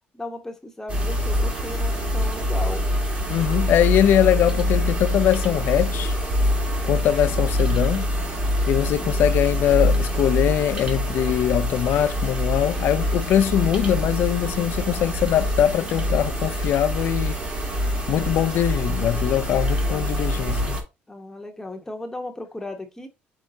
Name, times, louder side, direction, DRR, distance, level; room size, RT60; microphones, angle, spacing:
voice 1, 0.1-2.8 19.7-20.5 21.1-23.1, left 2 dB, 10° left, 1.0 m, -36 dB
sound 1, 0.9-20.8, equal, 35° right, 1.7 m, -25 dB
voice 2, 3.3-6.2 6.8-8.1 8.7-17.4 18.1-20.8, left 11 dB, 70° left, 0.5 m, -22 dB
5.5 x 3.5 x 2.7 m
cardioid pair, 95°, 4 cm